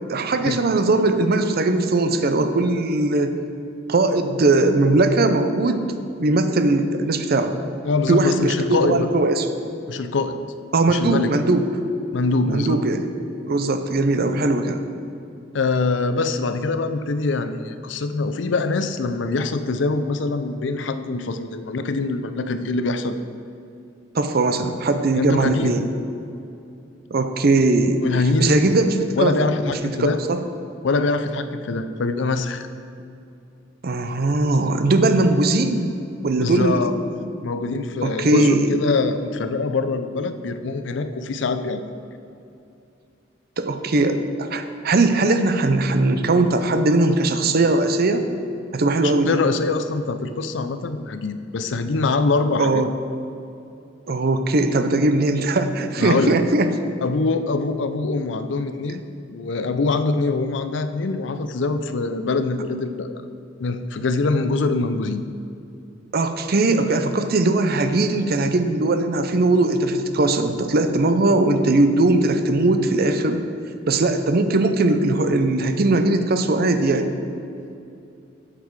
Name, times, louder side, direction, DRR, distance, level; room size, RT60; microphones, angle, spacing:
voice 1, 0.1-3.4 3.9-7.6 8.1-9.5 10.7-11.7 12.5-13.1 13.4-14.8 24.1-25.8 27.1-28.0 28.4-29.5 29.8-30.4 33.8-35.9 36.2-36.9 38.0-38.7 43.6-48.3 48.7-49.4 52.6-52.9 54.1-56.7 66.1-73.4 73.9-77.1, right 2 dB, 55° right, 8 dB, 0.6 m, -20 dB
voice 2, 7.8-9.1 9.9-10.4 10.9-11.3 12.1-12.8 15.5-23.2 25.1-25.8 28.0-28.6 29.2-30.2 30.8-32.7 36.4-41.9 49.0-52.8 56.0-56.4 57.0-59.0 59.3-63.2 63.6-65.3, left 3 dB, 70° left, 10 dB, 0.5 m, -24 dB
8.2 x 7.6 x 4.7 m, 2.7 s
head